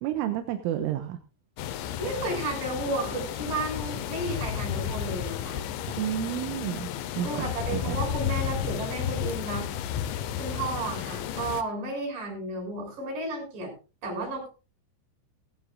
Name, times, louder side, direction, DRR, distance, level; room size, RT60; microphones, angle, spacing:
voice 1, 0.0-1.2 5.9-6.9 7.2-7.5 7.7-8.0, right 11 dB, 80° right, 6 dB, 3.5 m, -30 dB
sound 1, 1.6-11.6, left 10 dB, 75° left, 3.1 m, -32 dB
voice 2, 2.0-5.6 7.2-9.7 10.4-13.7 14.0-14.5, right 2 dB, 40° right, -1 dB, 8.4 m, -33 dB
19.0 x 15.0 x 2.5 m, 0.32 s
omnidirectional pair, 5.8 m